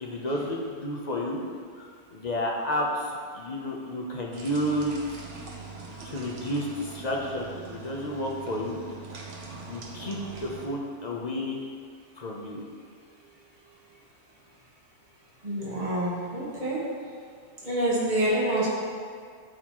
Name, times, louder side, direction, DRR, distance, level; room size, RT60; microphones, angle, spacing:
voice 1, 0.0-1.4 1.8-5.0 6.0-8.8 9.7-11.6 12.2-12.6, equal, 40° left, -2 dB, 0.8 m, -31 dB
sound 1, 4.3-10.7, right 4 dB, 75° right, 1.3 m, -42 dB
voice 2, 15.4-16.8 17.6-18.7, right 1 dB, 40° right, -8 dB, 1.9 m, -27 dB
12.0 x 4.1 x 3.0 m, 2.1 s
omnidirectional pair, 1.3 m